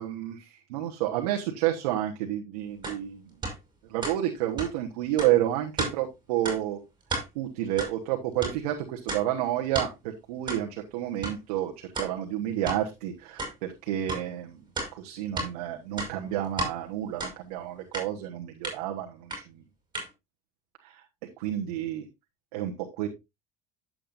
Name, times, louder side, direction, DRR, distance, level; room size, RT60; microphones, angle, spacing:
voice 1, 0.0-3.2 3.9-6.8 7.3-14.6 14.9-19.6 20.8-21.0 21.4-22.0 22.5-23.1, right 12 dB, 85° right, 1 dB, 1.3 m, -30 dB
sound 1, 2.8-3.0 3.4-3.6 4.0-4.2 4.6-4.7 5.2-5.3 5.8-5.9 6.5-6.6 7.0-7.3 7.8-7.9 8.4-8.6 9.1-9.2 9.7-9.9 10.5-10.6 11.2-11.4 11.9-12.1 12.7-12.8 13.4-13.5 14.1-14.2 14.8-15.5 15.9-16.7 17.2-17.3 17.9-18.1 18.6-18.8 19.3-19.4 19.9-20.1, right 2 dB, 25° right, 5.1 m, -32 dB
10.5 x 7.7 x 2.6 m, 0.22 s
supercardioid pair, 115°, 19 cm